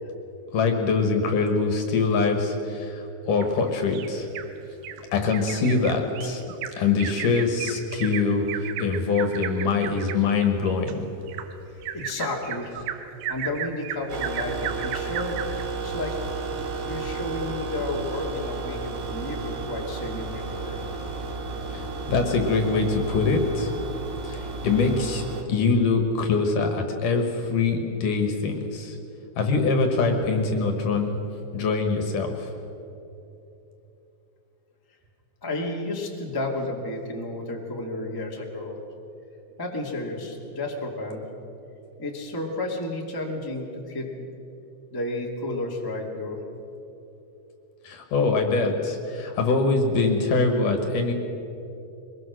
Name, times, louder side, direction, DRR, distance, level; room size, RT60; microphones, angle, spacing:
voice 1, 0.5-4.3 5.1-6.4 6.8-11.1 21.7-23.7 24.2-29.0 29.4-31.2 31.5-32.5 47.8-51.1, left 4 dB, 60° left, 5 dB, 2.5 m, -24 dB
Bird vocalization bird call bird song, 3.4-4.5 4.8-5.0 5.3-15.7 16.1-16.2 16.6-16.7, right 10 dB, 80° right, 2.1 m, -35 dB
voice 2, 11.9-15.4 15.8-16.2 16.8-20.8 35.4-38.8 39.6-41.2 42.0-44.3 44.9-46.4, left 2 dB, 25° left, -1 dB, 0.5 m, -32 dB
sound 1, 14.1-25.4, right 3 dB, 65° right, 3.9 m, -33 dB
23.5 x 21.0 x 6.4 m, 2.9 s
omnidirectional pair, 5.1 m